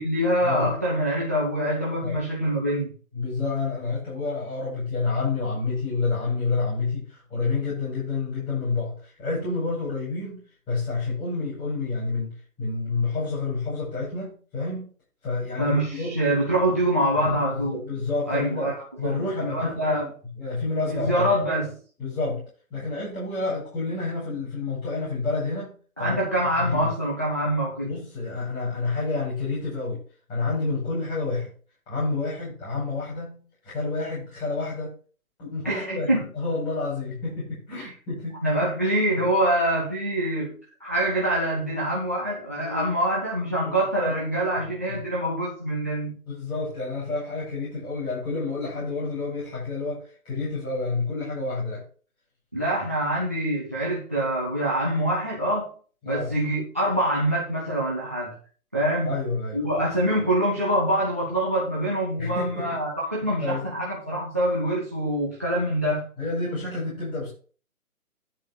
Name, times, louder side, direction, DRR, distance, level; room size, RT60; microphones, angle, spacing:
voice 1, 0.0-2.9 15.6-17.8 18.3-20.1 20.9-21.8 26.0-27.9 35.6-36.3 37.7-37.9 38.4-46.1 52.5-55.7 56.0-58.4 58.7-59.1 59.5-66.1, right 1 dB, 10° right, -3 dB, 0.5 m, -25 dB
voice 2, 3.1-14.9 15.2-16.3 17.1-20.1 20.4-21.3 22.0-26.9 27.8-30.0 30.3-31.5 31.9-34.9 35.4-38.5 39.2-39.3 42.6-42.8 43.6-44.2 46.3-51.8 56.0-56.3 59.0-59.6 62.2-62.8 63.4-63.7 66.2-67.3, left 3 dB, 15° left, -7 dB, 5.1 m, -29 dB
10.5 x 4.9 x 5.6 m, 0.40 s
hypercardioid pair, 145°, 44 cm